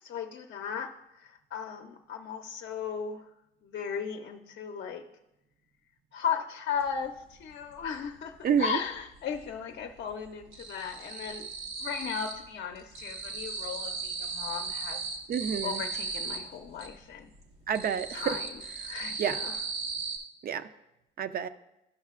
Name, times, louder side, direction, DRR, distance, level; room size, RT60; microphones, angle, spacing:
voice 1, 0.0-3.3 3.6-5.0 6.1-11.5 11.8-15.0 15.6-17.3 18.1-19.6, left 7 dB, 60° left, 4 dB, 0.6 m, -36 dB
sound 1, 6.9-7.0 7.3-8.6 8.9-9.6 9.8-12.5 12.7-16.9 17.3-20.2, right 4 dB, 85° right, 1.0 m, -37 dB
voice 2, 8.4-8.8 15.3-15.8 17.7-18.4 19.2-19.4 20.4-20.7 21.2-21.5, right 8 dB, 50° right, 10 dB, 0.5 m, -29 dB
12.5 x 5.6 x 2.4 m, 0.90 s
cardioid pair, 90°, 20 cm